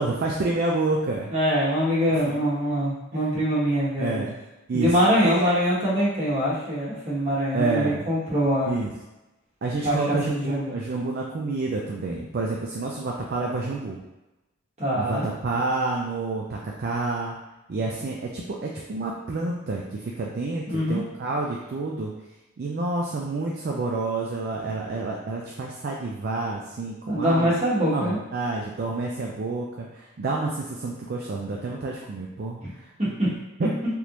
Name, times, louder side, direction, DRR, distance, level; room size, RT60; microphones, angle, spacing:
voice 1, 0.0-1.3 2.3-2.4 3.1-3.2 4.0-4.3 4.7-4.9 5.2-5.5 7.5-8.0 8.7-8.9 9.6-14.0 15.0-17.3 17.7-22.1 22.6-27.6 27.9-32.6 33.6-33.7, right 3 dB, 50° right, -2 dB, 0.4 m, -29 dB
voice 2, 1.3-4.3 4.7-8.7 9.8-10.7 14.8-15.3 20.7-21.0 27.1-28.2 32.6-32.7 33.0-33.3, equal, 35° right, -8 dB, 1.2 m, -24 dB
3.4 x 2.5 x 2.9 m, 1.0 s
head